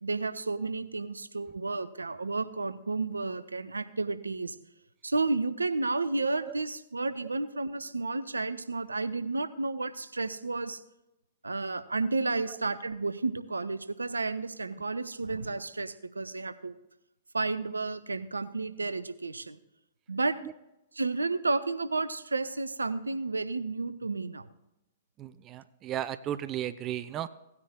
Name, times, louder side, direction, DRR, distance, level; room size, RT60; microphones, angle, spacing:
voice 1, 0.0-4.6 5.0-10.8 11.4-16.8 17.3-19.6 20.1-20.4 21.0-24.5, right 3 dB, 75° right, 12 dB, 0.6 m, -32 dB
voice 2, 25.2-27.3, right 11 dB, 25° right, 13 dB, 0.4 m, -35 dB
17.0 x 9.6 x 2.2 m, 0.89 s
figure-of-eight pair, 110°, 0 cm